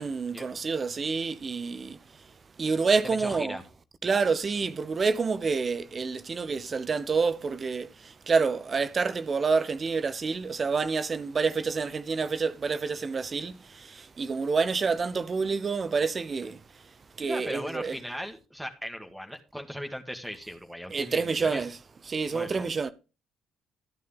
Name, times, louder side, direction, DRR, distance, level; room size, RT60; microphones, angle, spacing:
voice 1, 0.0-2.0 2.6-3.6 4.0-16.6 17.2-18.0 20.9-21.8 22.1-22.9, right 4 dB, 35° right, 0.9 m, -28 dB
voice 2, 3.0-3.6 17.2-21.7 22.3-22.7, equal, ahead, 1.9 m, -38 dB
14.0 x 9.4 x 3.6 m
figure-of-eight pair, 45°, 0 cm